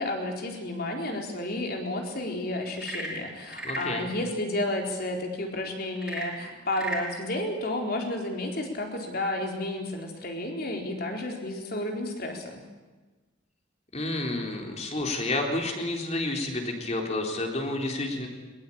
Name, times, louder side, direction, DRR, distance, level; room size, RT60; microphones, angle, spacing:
voice 1, 0.0-12.6, left 1 dB, 50° left, 2 dB, 4.0 m, -31 dB
Frog / Percussion / Wood, 2.7-4.0 6.0-7.1, right 1 dB, 5° right, 4.7 m, -35 dB
voice 2, 3.6-4.1 13.9-18.3, left 2 dB, 35° left, 2 dB, 3.8 m, -30 dB
21.5 x 21.0 x 8.7 m, 1.2 s
head